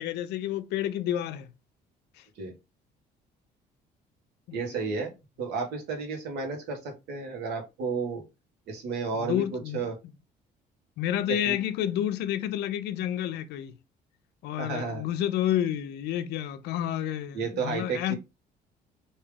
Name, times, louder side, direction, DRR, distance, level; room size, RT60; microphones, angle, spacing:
voice 1, 0.0-1.5 2.2-2.3 4.5-4.6 4.8-5.1 9.1-9.8 11.0-13.7 14.4-18.1, left 11 dB, 80° left, 0.5 m, -30 dB
voice 2, 4.5-5.1 5.4-8.2 8.7-10.0 11.4-11.6 14.6-15.0 17.3-18.2, right 4 dB, 80° right, 1.3 m, -32 dB
3.5 x 2.8 x 3.3 m
cardioid pair, 110°, 17 cm